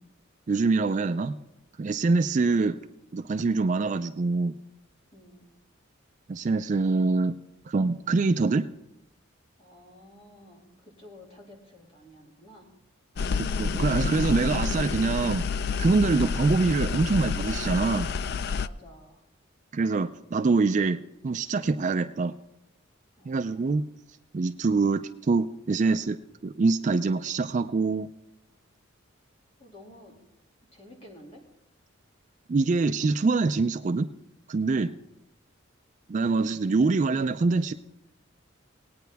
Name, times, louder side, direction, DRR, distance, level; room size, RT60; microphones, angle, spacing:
voice 1, 0.5-1.4 1.8-2.8 3.1-4.6 6.3-7.4 7.7-8.7 13.3-15.5 15.8-18.1 19.7-22.4 23.3-23.8 24.3-28.1 32.5-34.1 34.5-34.9 36.1-37.7, right 3 dB, 35° right, 10 dB, 0.3 m, -25 dB
voice 2, 5.1-5.5 9.6-12.7 18.6-19.2 23.2-23.8 29.6-30.2 30.7-31.4 34.7-35.0, left 1 dB, 30° left, -1 dB, 2.3 m, -51 dB
sound 1, 13.2-18.7, left 5 dB, 50° left, 0.3 m, -29 dB
19.0 x 9.2 x 3.4 m, 0.87 s
head